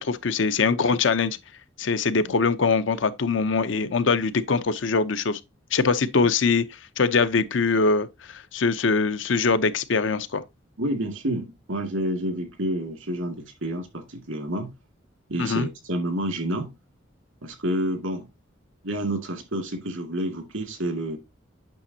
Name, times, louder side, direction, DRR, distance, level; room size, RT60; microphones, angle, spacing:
voice 1, 0.0-1.4 1.8-5.4 5.7-6.7 7.0-10.4 15.4-15.7, left 4 dB, 70° left, 0.6 m, -23 dB
voice 2, 10.8-14.7 15.3-16.7 17.4-18.3 18.8-21.2, right 1 dB, 90° right, 2.1 m, -29 dB
8.7 x 5.9 x 2.7 m
head